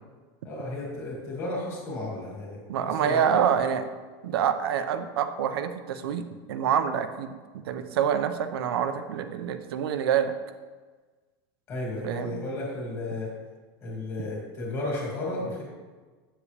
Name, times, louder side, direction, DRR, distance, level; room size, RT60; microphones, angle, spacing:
voice 1, 0.4-2.6 2.9-3.4 11.7-13.3 13.8-15.6, left 2 dB, 25° left, -3 dB, 2.2 m, -33 dB
voice 2, 2.7-3.9 4.2-6.2 6.5-7.4 7.7-10.3 12.0-12.4, right 8 dB, 85° right, 9 dB, 0.7 m, -26 dB
8.4 x 7.4 x 3.4 m, 1.4 s
supercardioid pair, 180°, 12 cm